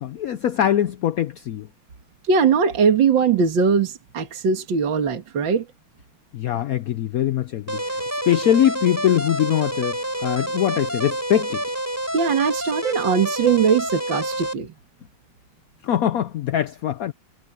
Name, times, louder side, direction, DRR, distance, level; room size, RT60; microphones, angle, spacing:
voice 1, 0.0-1.7 6.3-8.0 8.3-11.6 15.8-17.1, left 11 dB, 70° left, 0.8 m, -22 dB
voice 2, 2.3-5.6 12.1-14.7, right 6 dB, 65° right, 2.5 m, -20 dB
sound 1, 7.7-14.5, right 1 dB, 5° right, 5.2 m, -28 dB
omnidirectional pair, 2.2 m